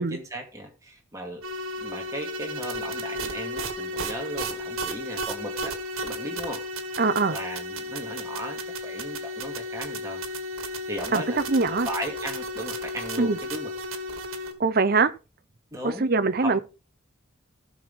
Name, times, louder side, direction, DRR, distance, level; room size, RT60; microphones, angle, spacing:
voice 1, 0.0-1.4 1.8-6.6 7.3-10.2 10.9-13.7 15.7-16.1 16.4-16.6, right 1 dB, 15° right, 2.5 m, -36 dB
sound 1, 1.4-14.5, equal, 85° right, 1.7 m, -33 dB
voice 2, 7.0-7.4 11.1-11.9 13.2-13.4 14.6-15.1 16.0-16.6, right 3 dB, 45° right, 0.7 m, -22 dB
16.0 x 6.3 x 3.7 m
head